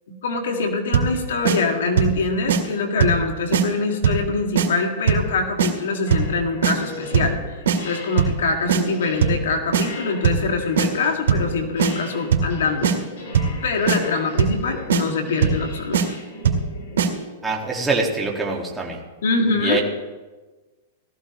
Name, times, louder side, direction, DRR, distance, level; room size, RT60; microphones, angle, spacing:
voice 1, 0.1-13.0 13.6-16.0 19.2-19.8, left 3 dB, 80° left, 3 dB, 1.9 m, -24 dB
sound 1, 0.9-1.2 1.4-1.6 2.0-2.2 2.5-2.6 3.0-3.2 3.5-3.6 4.0-4.3 4.5-4.7 5.1-5.3 5.6-5.7 6.1-6.3 6.6-6.7 7.1-7.4 7.7-7.8 8.2-8.4 8.7-8.8 9.2-9.4 9.7-9.8 10.2-10.5 10.8-10.9 11.3-11.5 11.8-11.9 12.3-12.5 12.8-13.0 13.3-13.6 13.9-14.0 14.4-14.6 14.9-15.0 15.4-15.6 15.9-16.1 16.4-16.7 17.0-17.1, right 7 dB, 90° right, 2.0 m, -19 dB
sound 2, 6.1-17.2, left 2 dB, 65° left, 4.8 m, -39 dB
voice 2, 17.4-19.0 19.6-19.8, right 3 dB, 5° right, -2 dB, 1.7 m, -24 dB
18.0 x 13.5 x 3.0 m, 1.2 s
hypercardioid pair, 150°, 0 cm